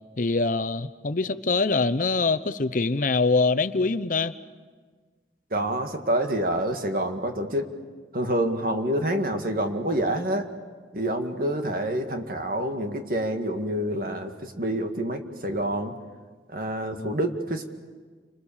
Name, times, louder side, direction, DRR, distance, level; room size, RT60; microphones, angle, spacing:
voice 1, 0.2-4.4 17.0-17.2, left 3 dB, 45° left, 13 dB, 0.7 m, -24 dB
voice 2, 5.5-7.7 8.1-10.5 10.9-15.9 16.5-17.7, right 1 dB, 50° right, 5 dB, 2.0 m, -27 dB
29.5 x 26.0 x 7.2 m, 1.5 s
head